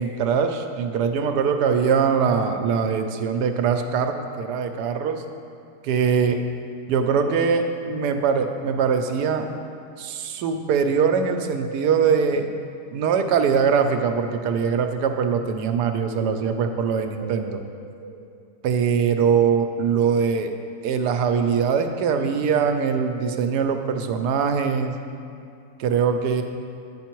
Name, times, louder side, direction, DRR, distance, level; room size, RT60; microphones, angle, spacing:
voice 1, 0.0-5.2 5.8-6.4 6.9-9.5 10.0-12.5 12.9-17.6 18.6-20.5 20.8-25.0 25.8-26.4, right 6 dB, 85° right, 7 dB, 1.2 m, -22 dB
sound 1, 7.5-8.6 11.3-12.7 16.9-18.3 22.8-24.2, right 4 dB, 55° right, 1.0 m, -38 dB
9.2 x 5.8 x 4.5 m, 2.5 s
omnidirectional pair, 1.7 m